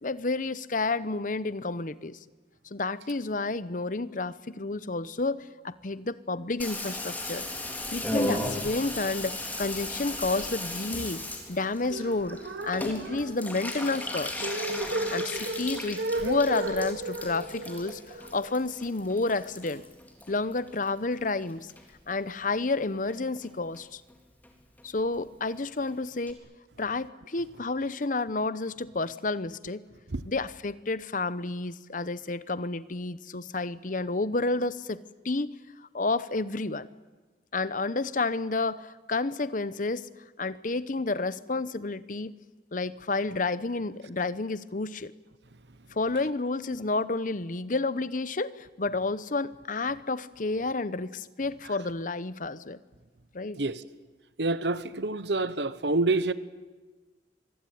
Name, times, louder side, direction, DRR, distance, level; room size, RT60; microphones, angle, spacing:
voice 1, 0.0-2.2 2.7-7.5 7.9-11.2 11.5-14.5 15.1-19.8 20.3-21.7 22.1-24.0 24.8-26.4 26.8-29.9 30.2-35.6 35.9-36.9 37.5-40.1 40.4-42.3 42.7-45.1 45.9-52.8 53.3-53.6, left 3 dB, 45° left, 0.9 m, -30 dB
Water tap faucet / Bathtub (filling or washing), 6.6-21.1 21.4-22.2 22.5-22.6 22.8-22.9 23.1-23.5 23.7-23.8 24.1-24.2 24.4-24.5 24.8-24.9 25.1-25.2 25.5-25.6 25.9-26.0 26.3-26.4, left 1 dB, 10° left, 3.7 m, -36 dB
Knock, 6.8-10.9, equal, 30° right, 5.4 m, -51 dB
sound 1, 11.8-19.0, right 2 dB, 90° right, 3.5 m, -34 dB
voice 2, 54.4-56.3, right 2 dB, 75° right, 1.1 m, -27 dB
25.5 x 24.0 x 9.4 m
head